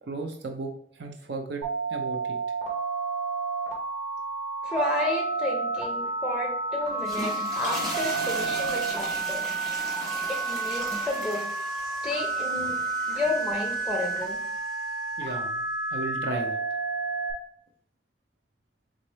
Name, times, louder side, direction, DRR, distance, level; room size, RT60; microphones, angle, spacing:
voice 1, 0.0-1.6 1.9-2.4 12.7-12.8 15.2-16.6, right 3 dB, 70° right, 4 dB, 0.5 m, -35 dB
Telephone, 1.6-17.3, right 3 dB, 40° right, 1.3 m, -30 dB
voice 2, 4.6-9.5 10.3-11.4 12.0-12.8 13.1-14.4, left 2 dB, 5° right, 0 dB, 0.5 m, -31 dB
sound 1, 6.9-15.2, right 1 dB, 20° right, 1.4 m, -38 dB
4.1 x 3.7 x 3.2 m, 0.64 s
head